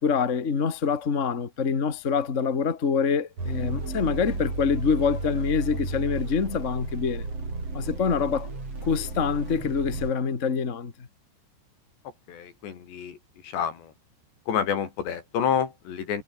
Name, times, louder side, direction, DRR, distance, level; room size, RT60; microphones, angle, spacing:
voice 1, 0.0-7.3 7.7-8.5 8.8-10.9, left 5 dB, 40° left, 1.0 m, -25 dB
sound 1, 3.4-10.1, right 3 dB, 35° right, 8.0 m, -33 dB
voice 2, 12.3-13.2 13.4-13.9 14.5-16.2, left 8 dB, 85° left, 5.8 m, -28 dB
omnidirectional pair, 4.9 m